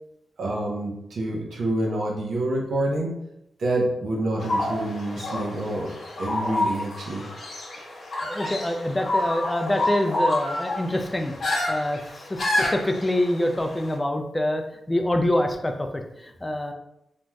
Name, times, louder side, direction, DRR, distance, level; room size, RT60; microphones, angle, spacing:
voice 1, 0.4-3.2 3.6-5.9 6.2-7.2, right 1 dB, 75° right, -1 dB, 0.7 m, -27 dB
sound 1, 4.4-13.9, left 1 dB, 65° left, 0.7 m, -29 dB
voice 2, 8.2-11.3 11.7-12.0 12.3-14.6 14.9-16.7, left 1 dB, 15° left, 5 dB, 0.3 m, -25 dB
3.2 x 2.5 x 2.2 m, 0.84 s
cardioid pair, 90°, 0 cm